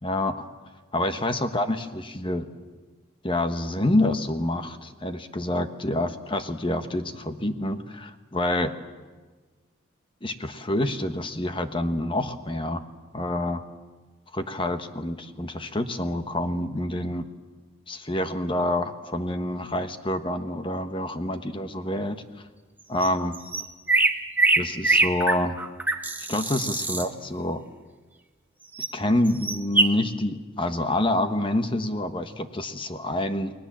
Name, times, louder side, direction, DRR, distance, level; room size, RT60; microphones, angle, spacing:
voice 1, 0.0-0.5 0.9-2.5 3.2-8.7 10.2-12.8 13.1-13.6 14.3-17.3 17.9-22.2 22.9-23.4 24.6-25.6 26.3-27.6 28.9-33.5, left 1 dB, 25° left, 8 dB, 1.2 m, -27 dB
sound 1, 23.0-23.1 23.3-27.1 28.8-28.9 29.3-29.9, right 2 dB, 10° right, 1.1 m, -23 dB
30.0 x 20.5 x 7.5 m, 1.3 s
head